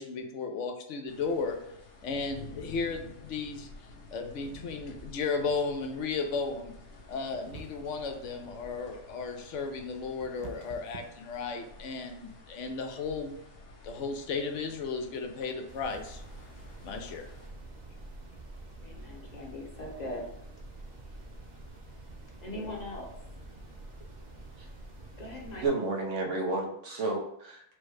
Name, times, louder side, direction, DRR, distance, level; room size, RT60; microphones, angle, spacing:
voice 1, 0.0-1.6 2.0-3.7 4.1-6.7 7.1-13.4 13.8-16.2 16.8-17.2, left 4 dB, 90° left, 4 dB, 1.0 m, -34 dB
sound 1, 1.1-17.5, left 3 dB, 60° left, 1.0 m, -51 dB
sound 2, 7.3-8.1 9.6-11.9, right 5 dB, 60° right, 0.5 m, -48 dB
sound 3, 15.7-25.7, right 1 dB, 40° right, 0.9 m, -47 dB
voice 2, 18.8-20.3 22.4-23.1 25.2-25.9, left 1 dB, 40° left, -1 dB, 0.9 m, -40 dB
voice 3, 25.6-27.6, right 3 dB, 85° right, 1 dB, 1.2 m, -31 dB
4.6 x 2.2 x 4.7 m, 0.73 s
omnidirectional pair, 1.2 m